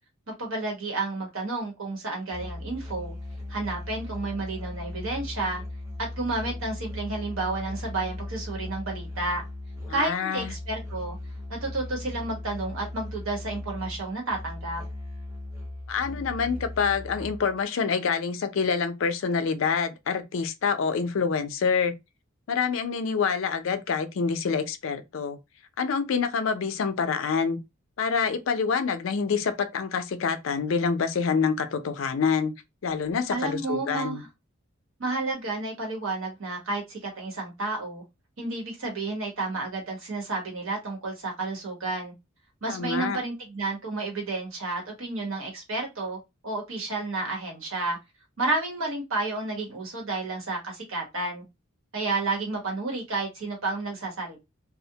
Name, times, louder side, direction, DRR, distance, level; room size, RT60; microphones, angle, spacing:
voice 1, 0.4-3.1 3.5-5.6 6.0-9.4 9.9-11.2 11.5-14.8 33.3-34.3 35.0-38.0 38.4-42.1 42.6-48.0 48.4-51.4 51.9-54.4, right 2 dB, 75° right, 1.0 m, -31 dB
Musical instrument, 2.3-17.6, left 1 dB, 15° right, 0.9 m, -38 dB
voice 2, 9.9-10.5 15.9-21.9 22.5-25.4 25.8-27.6 28.0-32.5 32.8-34.2 42.7-43.2, left 5 dB, 70° left, 0.4 m, -26 dB
2.4 x 2.1 x 2.7 m
head